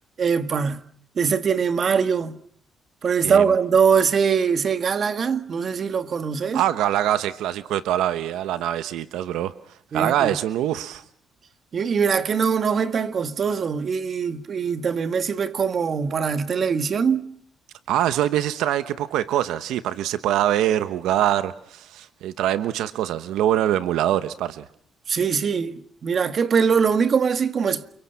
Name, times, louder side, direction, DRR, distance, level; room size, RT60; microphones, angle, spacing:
voice 1, 0.2-0.8 1.2-2.4 3.0-6.6 9.9-10.4 11.7-17.2 25.1-27.9, right 6 dB, 50° right, 1.7 m, -22 dB
voice 2, 6.5-9.5 9.9-11.0 17.9-24.6, right 12 dB, 90° right, 1.0 m, -24 dB
29.5 x 24.5 x 5.8 m
cardioid pair, 90°, 0 cm